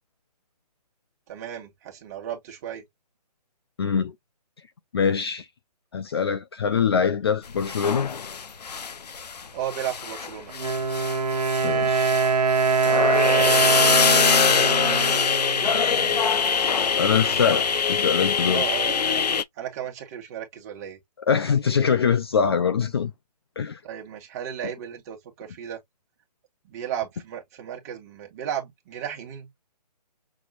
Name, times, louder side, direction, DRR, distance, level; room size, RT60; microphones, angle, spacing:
voice 1, 1.3-2.8 9.5-10.5 14.2-15.4 18.5-19.2 19.6-21.0 23.8-25.8 26.6-29.5, right 10 dB, 25° right, 1.6 m, -35 dB
voice 2, 3.8-4.1 4.9-5.5 5.9-8.1 11.6-12.1 17.0-18.7 21.3-23.1 23.6-23.8, left 6 dB, 35° left, 0.5 m, -23 dB
sound 1, 7.6-9.4 9.7-19.4, left 6 dB, 70° left, 0.7 m, -23 dB
Wind instrument woodwind instrument, 10.5-16.3, right 4 dB, 65° right, 1.0 m, -23 dB
6.2 x 2.8 x 2.5 m
hypercardioid pair, 165°, 21 cm